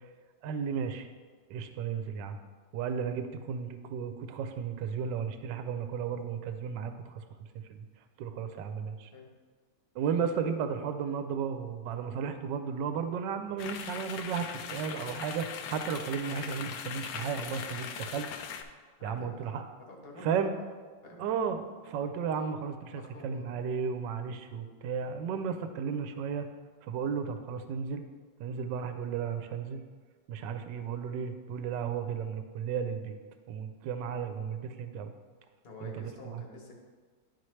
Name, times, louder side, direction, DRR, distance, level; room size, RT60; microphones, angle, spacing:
voice 1, 0.4-1.1 1.5-2.4 2.7-7.2 7.5-7.9 8.2-9.1 9.9-18.3 19.0-19.6 20.2-20.5 21.2-26.4 26.8-28.0 28.4-29.8 30.3-33.2 33.5-35.1 35.8-36.4, right 6 dB, 80° right, 8 dB, 1.2 m, -34 dB
sound 1, 13.6-18.6, left 7 dB, 70° left, 0.9 m, -40 dB
voice 2, 19.0-20.6 21.0-21.3 22.9-23.5 35.6-36.7, left 2 dB, 40° left, 0 dB, 1.1 m, -48 dB
11.0 x 4.4 x 3.2 m, 1.4 s
omnidirectional pair, 1.9 m